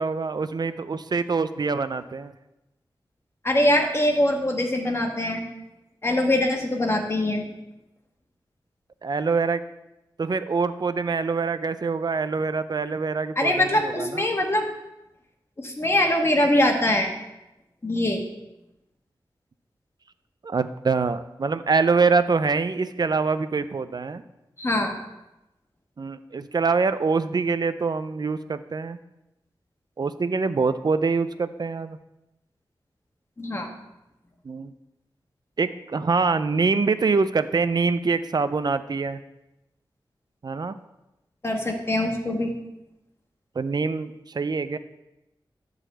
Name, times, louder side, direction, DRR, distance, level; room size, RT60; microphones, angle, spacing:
voice 1, 0.0-2.3 9.0-9.6 10.2-14.3 20.4-24.2 26.0-29.0 30.0-32.0 34.4-34.7 35.6-39.2 40.4-40.8 43.6-44.8, right 4 dB, 50° right, 12 dB, 0.5 m, -25 dB
voice 2, 3.4-5.4 6.0-7.5 13.4-14.7 15.6-17.1 17.8-18.2 24.6-25.0 33.4-33.7 41.4-42.5, left 1 dB, 30° left, 2 dB, 1.5 m, -23 dB
11.0 x 4.0 x 7.7 m, 0.93 s
wide cardioid pair, 110°, 9 cm